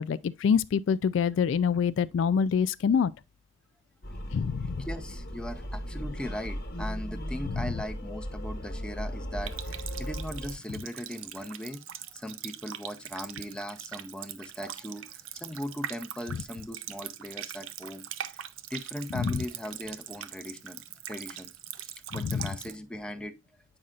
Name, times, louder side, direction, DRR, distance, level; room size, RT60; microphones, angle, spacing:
voice 1, 0.0-3.1 4.3-4.8 19.1-19.4 22.2-22.5, left 6 dB, 65° left, 0.3 m, -26 dB
sound 1, 4.0-10.5, equal, 50° left, 1.1 m, -36 dB
voice 2, 4.6-20.8 21.1-21.5 21.8-23.3, equal, 5° left, 0.6 m, -39 dB
Water tap faucet, 9.4-22.7, right 11 dB, 80° right, 0.5 m, -42 dB
8.7 x 5.5 x 2.4 m
head